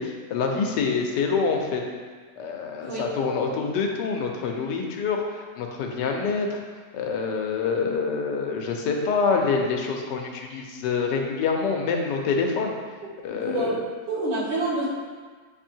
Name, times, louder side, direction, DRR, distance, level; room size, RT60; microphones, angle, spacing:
voice 1, 0.0-1.8 2.4-6.6 6.9-12.7 13.2-13.7, left 5 dB, 85° left, 2 dB, 1.4 m, -26 dB
voice 2, 13.3-13.8 14.1-14.9, right 2 dB, 90° right, -8 dB, 2.4 m, -27 dB
7.9 x 2.7 x 4.4 m, 1.5 s
omnidirectional pair, 1.8 m